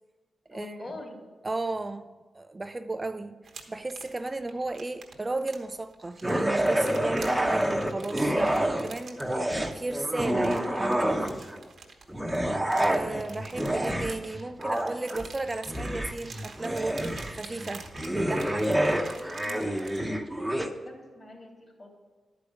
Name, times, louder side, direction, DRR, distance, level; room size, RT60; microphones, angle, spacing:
voice 1, 0.5-1.3 18.7-21.9, left 1 dB, 45° left, 2.8 m, -44 dB
voice 2, 1.4-9.2 9.7-11.3 12.8-18.7, right 2 dB, 30° right, 0.4 m, -34 dB
sound 1, 3.4-20.1, right 5 dB, 75° right, 1.2 m, -48 dB
sound 2, 6.2-8.9 9.2-11.6 12.1-20.7, right 1 dB, 10° right, 0.8 m, -28 dB
11.0 x 4.9 x 6.5 m
cardioid pair, 60°, 0 cm